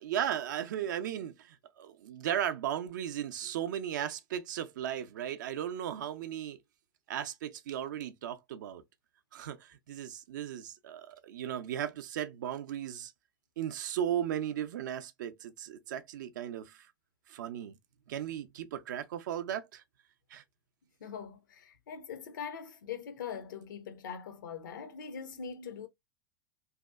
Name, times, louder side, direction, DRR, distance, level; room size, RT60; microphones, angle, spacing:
voice 1, 0.0-6.6 7.1-8.8 9.3-13.1 13.6-16.9 17.3-17.7 18.1-19.8 20.3-20.4, right 10 dB, 60° right, 0.4 m, -36 dB
voice 2, 21.0-25.9, left 7 dB, 65° left, 0.5 m, -42 dB
2.7 x 2.1 x 2.3 m
figure-of-eight pair, 90°, 11 cm